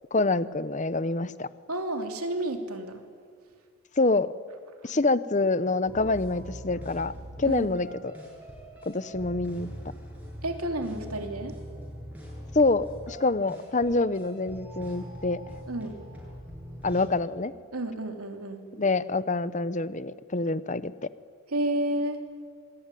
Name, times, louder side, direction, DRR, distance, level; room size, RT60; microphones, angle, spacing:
voice 1, 0.1-1.5 4.0-4.3 4.8-7.1 7.4-8.1 8.9-9.7 12.5-15.4 16.8-17.5 18.7-20.9, left 3 dB, 35° left, 15 dB, 0.8 m, -26 dB
voice 2, 1.7-3.0 7.4-7.8 10.4-11.6 15.7-16.0 17.7-18.6 21.5-22.2, right 1 dB, 85° right, 5 dB, 3.1 m, -31 dB
sound 1, 5.9-17.0, equal, 5° right, 7.4 m, -43 dB
26.5 x 22.5 x 10.0 m, 2.1 s
head